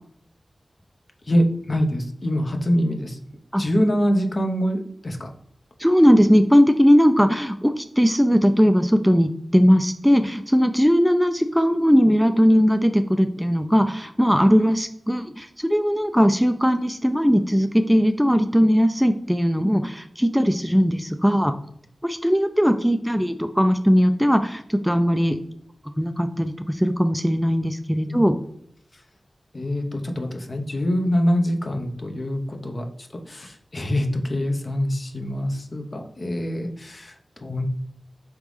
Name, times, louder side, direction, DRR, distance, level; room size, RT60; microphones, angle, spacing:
voice 1, 1.2-3.2 3.6-5.3 28.1-28.2 28.9-29.0 29.5-37.2 37.4-37.7, equal, 50° left, 4 dB, 0.7 m, -24 dB
voice 2, 5.8-21.5 22.0-25.4 26.0-28.3, equal, ahead, 8 dB, 0.3 m, -19 dB
4.0 x 3.4 x 3.2 m, 0.71 s
cardioid pair, 45°, 0 cm